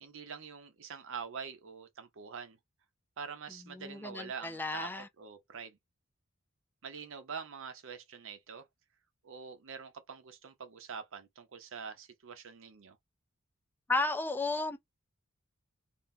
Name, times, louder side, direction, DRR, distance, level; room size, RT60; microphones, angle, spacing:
voice 1, 0.0-2.6 3.2-5.8 6.8-8.7 9.2-13.0, right 6 dB, 65° right, 0.7 m, -45 dB
voice 2, 3.6-5.1 13.9-14.8, left 3 dB, 10° left, 0.3 m, -33 dB
2.7 x 2.0 x 3.6 m
head